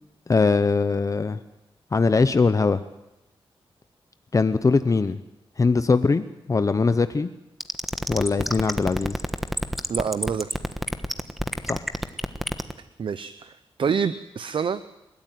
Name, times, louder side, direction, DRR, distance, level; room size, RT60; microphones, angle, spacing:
voice 1, 0.3-1.4 1.9-2.8 4.3-5.2 5.6-7.3 8.1-9.2 11.6-11.9, left 4 dB, 35° left, 11 dB, 0.8 m, -21 dB
sound 1, 7.6-12.7, equal, ahead, 1.3 m, -27 dB
voice 2, 9.9-10.6 13.0-13.5 13.8-14.8, right 6 dB, 60° right, 13 dB, 0.7 m, -26 dB
29.0 x 14.0 x 9.3 m, 0.95 s
wide cardioid pair, 110°, 10 cm